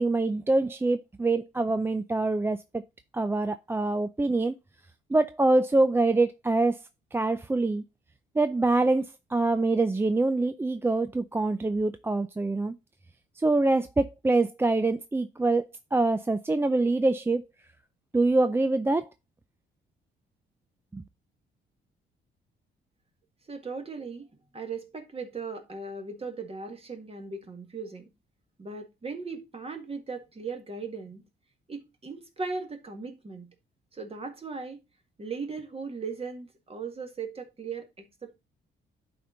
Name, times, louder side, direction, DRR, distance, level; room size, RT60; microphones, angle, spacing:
voice 1, 0.0-2.8 3.1-4.5 5.1-6.8 7.1-7.8 8.4-12.7 13.4-17.4 18.1-19.1 20.9-21.0, right 2 dB, 10° right, 0.4 m, -25 dB
voice 2, 23.5-28.1 28.6-31.2 31.7-33.5 33.9-34.8 35.2-38.1, right 4 dB, 30° right, 1.8 m, -38 dB
11.0 x 4.4 x 3.8 m
cardioid pair, 90°, 20 cm